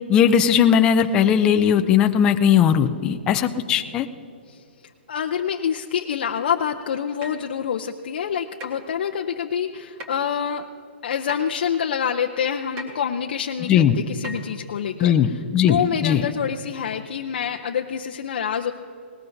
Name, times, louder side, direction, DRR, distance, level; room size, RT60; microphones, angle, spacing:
voice 1, 0.1-4.1 13.7-14.0 15.0-16.2, left 8 dB, 15° left, 7 dB, 0.4 m, -18 dB
voice 2, 5.1-10.7 11.0-15.4 15.7-18.7, left 8 dB, 55° left, 3 dB, 0.6 m, -26 dB
sound 1, 7.2-7.5 8.6-8.8 10.0-10.2 11.3-11.4 12.8-13.0 14.2-14.5 15.7-15.8 16.4-16.5, equal, 20° right, 1.6 m, -37 dB
19.0 x 19.0 x 2.7 m, 2.6 s
hypercardioid pair, 170°, 6 cm